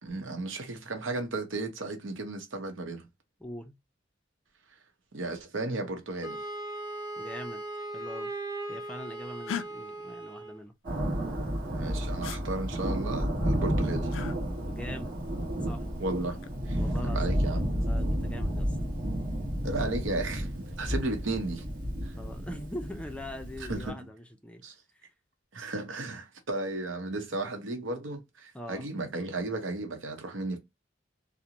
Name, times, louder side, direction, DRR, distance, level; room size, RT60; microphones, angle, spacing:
voice 1, 0.0-3.1 5.1-6.4 11.7-14.1 16.0-16.8 17.0-17.7 19.6-21.6 22.0-22.1 23.7-24.1 24.6-24.7 25.5-30.6, right 2 dB, 90° right, 0.7 m, -34 dB
voice 2, 3.4-3.7 7.2-7.6 7.9-8.3 8.7-10.7 14.7-15.2 15.6-15.9 16.8-17.4 17.8-18.8 22.2-24.6 25.0-25.1 28.5-28.9, equal, 5° left, 0.4 m, -42 dB
Wind instrument woodwind instrument, 6.2-10.6, right 2 dB, 20° right, 0.7 m, -38 dB
sound 1, 9.5-9.7 12.2-12.4 14.1-14.4 16.1-16.6, left 8 dB, 85° left, 0.3 m, -36 dB
Thunder, 10.8-23.9, equal, 50° right, 1.1 m, -31 dB
2.5 x 2.0 x 2.8 m
head